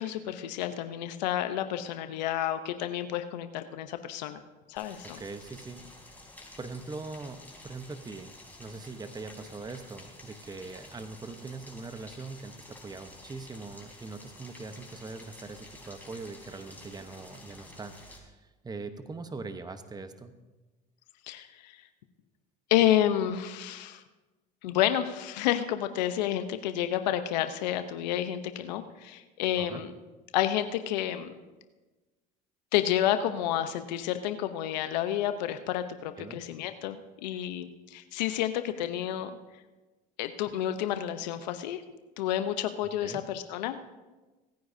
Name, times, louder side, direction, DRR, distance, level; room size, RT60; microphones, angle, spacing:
voice 1, 0.0-4.4 4.7-5.2 21.3-21.8 22.7-24.0 24.6-29.9 30.3-31.3 32.7-39.3 40.2-41.8 42.2-43.9, left 11 dB, 85° left, 10 dB, 0.8 m, -30 dB
Rain, 4.8-18.2, left 1 dB, 10° left, 3.5 m, -50 dB
voice 2, 5.0-5.8 6.6-8.3 8.6-20.3 29.6-29.9 36.2-36.4 43.0-43.2, right 3 dB, 20° right, 9 dB, 1.0 m, -42 dB
25.5 x 9.6 x 2.7 m, 1.2 s
hypercardioid pair, 80°, 21 cm